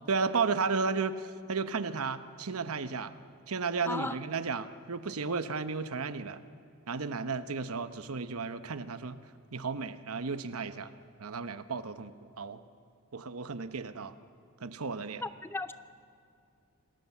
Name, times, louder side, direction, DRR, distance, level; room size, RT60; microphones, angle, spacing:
voice 1, 0.1-3.1 3.5-6.4 6.9-9.2 9.5-10.9 11.2-12.1 12.4-12.6 13.1-14.1 14.6-15.2, right 4 dB, 80° right, 1.0 m, -33 dB
voice 2, 3.9-4.2 15.2-15.7, left 2 dB, 10° left, 0.5 m, -35 dB
27.5 x 19.0 x 7.3 m
head